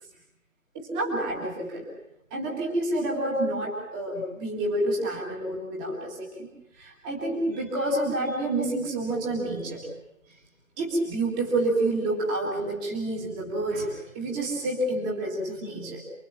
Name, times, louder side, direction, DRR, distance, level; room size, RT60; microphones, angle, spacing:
voice 1, 0.7-1.9 2.3-6.5 6.8-9.9 10.8-16.0, right 1 dB, 5° right, -1 dB, 1.9 m, -28 dB
28.0 x 21.5 x 7.4 m, 0.85 s
figure-of-eight pair, 160°, 41 cm